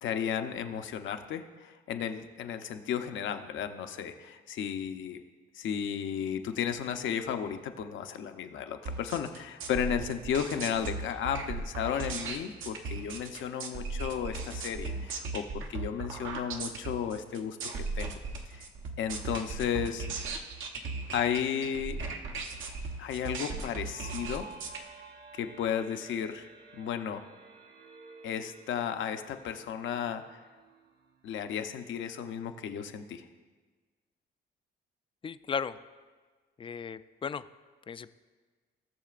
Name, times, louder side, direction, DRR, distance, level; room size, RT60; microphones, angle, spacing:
voice 1, 0.0-5.2 5.5-15.4 15.7-17.7 17.9-18.2 18.5-18.7 19.0-20.1 21.1-22.1 23.0-24.5 25.3-26.5 26.7-27.2 28.2-30.4 31.2-33.2, left 8 dB, 75° left, 7 dB, 0.7 m, -34 dB
sound 1, 8.9-24.8, right 3 dB, 80° right, 1.0 m, -37 dB
sound 2, 23.9-31.5, right 4 dB, 55° right, 1.4 m, -52 dB
voice 2, 35.2-35.8 36.6-37.5 37.9-38.1, left 6 dB, 25° left, 14 dB, 0.3 m, -35 dB
18.0 x 6.6 x 2.5 m, 1.4 s
cardioid pair, 90°, 20 cm